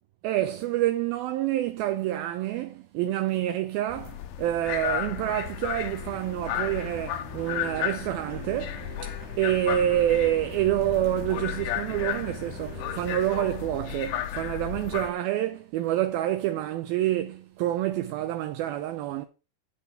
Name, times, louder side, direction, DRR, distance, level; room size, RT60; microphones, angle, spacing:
voice 1, 0.2-19.3, right 13 dB, 80° right, 2.2 m, -27 dB
sound 1, 3.9-15.1, left 11 dB, 75° left, 2.6 m, -34 dB
sound 2, 6.0-13.2, right 6 dB, 50° right, 2.5 m, -46 dB
8.3 x 8.2 x 5.7 m
omnidirectional pair, 4.9 m